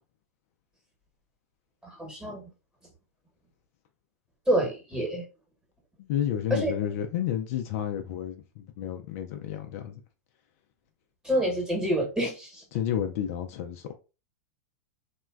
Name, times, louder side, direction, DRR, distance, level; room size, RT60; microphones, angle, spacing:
voice 1, 1.8-2.5 4.5-5.2 6.5-6.7 11.2-12.6, right 1 dB, 5° right, 1.1 m, -27 dB
voice 2, 6.0-10.0 12.7-13.9, left 10 dB, 55° left, 0.4 m, -31 dB
3.0 x 2.1 x 2.3 m
hypercardioid pair, 105°, 9 cm